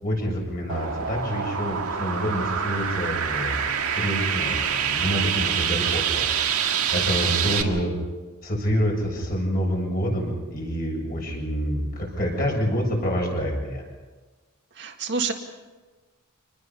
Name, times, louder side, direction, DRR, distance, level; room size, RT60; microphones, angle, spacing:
voice 1, 0.0-6.5 6.9-7.9 8.4-13.8, equal, 45° left, -1 dB, 7.6 m, -27 dB
sound 1, 0.7-7.6, right 8 dB, 90° right, 1.8 m, -26 dB
voice 2, 7.4-7.9 14.7-15.3, right 4 dB, 55° right, 2 dB, 2.0 m, -29 dB
26.0 x 20.5 x 5.6 m, 1.3 s
head